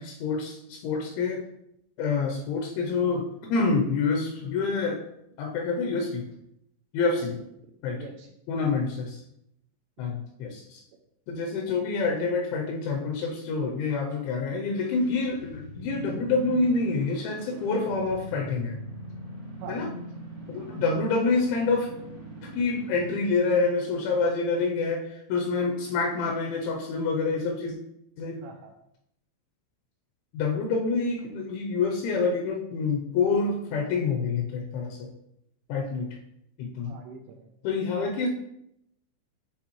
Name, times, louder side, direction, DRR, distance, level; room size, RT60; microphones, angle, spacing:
voice 1, 0.0-1.4 2.0-5.0 5.4-6.2 6.9-7.4 7.8-8.0 8.5-9.2 10.0-10.8 11.3-18.8 19.7-19.9 20.5-21.9 22.4-27.8 28.2-28.4 30.3-35.1 35.7-36.2 36.6-36.9 37.6-38.3, left 4 dB, 80° left, 1 dB, 2.8 m, -27 dB
voice 2, 7.9-8.3 19.6-19.8 20.6-20.8 28.4-28.7 36.9-37.5, right 5 dB, 85° right, 1 dB, 2.8 m, -44 dB
sound 1, 14.6-23.2, right 1 dB, 45° right, 0.8 m, -42 dB
9.8 x 3.4 x 3.0 m, 0.79 s
omnidirectional pair, 5.7 m